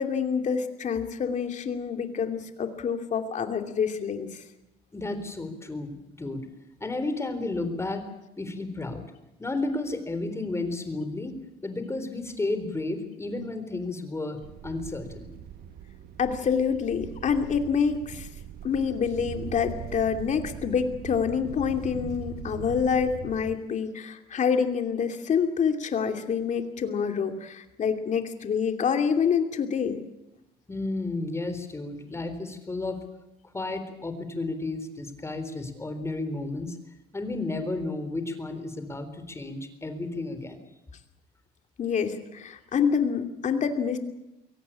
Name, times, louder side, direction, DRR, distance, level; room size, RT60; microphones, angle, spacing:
voice 1, 0.0-4.4 16.2-18.3 18.6-30.0 41.8-44.0, left 6 dB, 45° left, 6 dB, 2.7 m, -27 dB
voice 2, 4.9-6.5 6.8-8.0 8.4-9.0 9.4-11.3 11.6-15.3 30.7-33.0 33.5-36.8 37.1-40.6, left 2 dB, 15° left, 9 dB, 3.8 m, -32 dB
sound 1, 14.4-23.5, right 9 dB, 70° right, 1.5 m, -41 dB
23.0 x 17.5 x 8.8 m, 0.91 s
cardioid pair, 110°, 17 cm